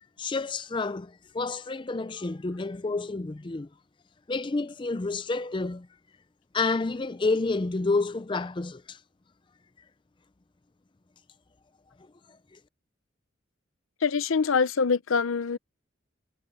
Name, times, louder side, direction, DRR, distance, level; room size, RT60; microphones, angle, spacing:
voice 1, 0.2-3.7 4.3-5.9 6.5-9.0, left 3 dB, 25° left, 0.4 m, -29 dB
voice 2, 14.0-15.6, left 5 dB, 80° left, 0.7 m, -24 dB
head